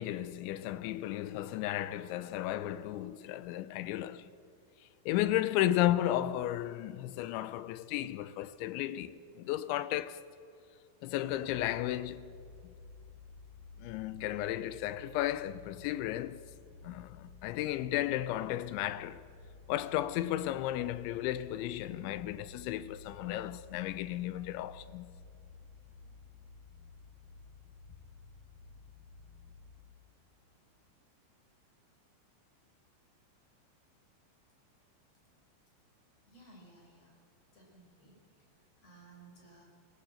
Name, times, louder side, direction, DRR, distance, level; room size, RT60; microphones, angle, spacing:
voice 1, 0.0-4.3 5.1-10.2 11.0-12.3 13.8-16.4 16.8-19.2 19.7-25.1, left 13 dB, 80° left, 2.9 m, -34 dB
sound 1, 11.3-29.8, left 4 dB, 45° right, 3.5 m, -54 dB
voice 2, 36.3-37.2 37.5-39.6, right 2 dB, 35° left, 5.6 m, -58 dB
20.5 x 18.0 x 7.8 m
omnidirectional pair, 5.6 m